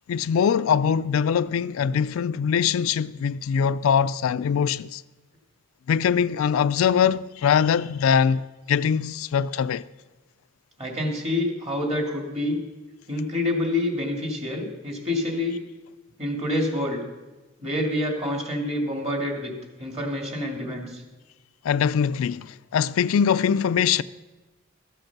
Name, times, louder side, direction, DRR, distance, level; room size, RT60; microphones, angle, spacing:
voice 1, 0.1-5.0 5.9-9.9 21.6-24.0, left 7 dB, 85° left, 0.3 m, -22 dB
voice 2, 10.8-12.6 13.1-15.6 16.2-17.0 17.6-19.5 19.8-21.0, left 1 dB, 30° right, 2.3 m, -27 dB
13.5 x 7.9 x 5.9 m
head